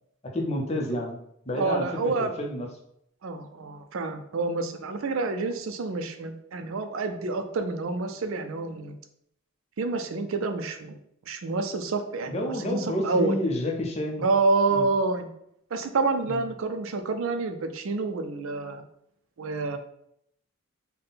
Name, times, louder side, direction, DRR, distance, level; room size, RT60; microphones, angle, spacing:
voice 1, 0.2-1.2 1.5-2.7 12.3-14.3 14.7-14.8 16.2-16.4, left 1 dB, 30° left, 0 dB, 0.6 m, -29 dB
voice 2, 1.6-2.3 3.2-8.9 9.8-11.0 11.3-12.3 12.6-13.4 14.2-15.3 15.7-18.8 19.4-19.8, right 3 dB, 70° right, 7 dB, 0.4 m, -28 dB
3.6 x 2.1 x 3.9 m, 0.72 s
head